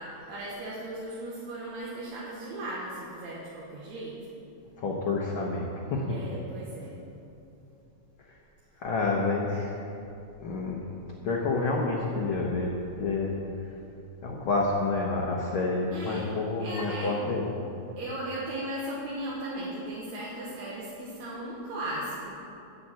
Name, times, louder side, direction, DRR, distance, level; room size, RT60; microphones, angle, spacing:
voice 1, 0.0-4.2 6.1-7.0 15.9-16.3 16.6-17.1 18.0-22.4, right 1 dB, 70° right, -7 dB, 2.6 m, -37 dB
voice 2, 4.8-6.2 8.8-9.7 10.4-10.8 11.2-12.7 13.0-13.4 14.2-17.6, left 3 dB, 60° left, -2 dB, 1.4 m, -28 dB
8.4 x 8.4 x 7.5 m, 2.7 s
omnidirectional pair, 3.4 m